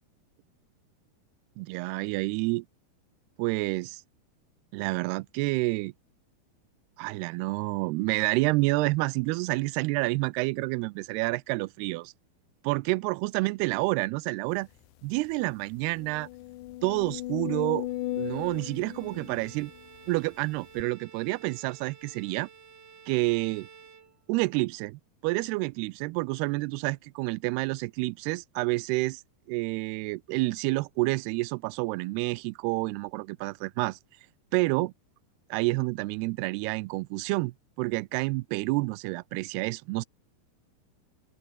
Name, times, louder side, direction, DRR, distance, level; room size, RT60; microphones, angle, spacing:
voice 1, 1.6-2.7 3.4-4.0 4.7-5.9 7.0-12.1 12.6-14.7 15.0-16.3 16.8-17.9 18.1-19.7 20.1-22.5 23.1-23.7 24.3-29.2 29.5-34.0 34.5-34.9 35.5-40.1, right 23 dB, 90° right, 2.6 m, -29 dB
sound 1, 14.8-14.9 15.3-15.4 15.9-20.1 20.8-20.9, left 16 dB, 75° left, 2.1 m, -36 dB
Bowed string instrument, 17.9-24.6, right 6 dB, 45° right, 1.6 m, -53 dB
open air
omnidirectional pair, 4.6 m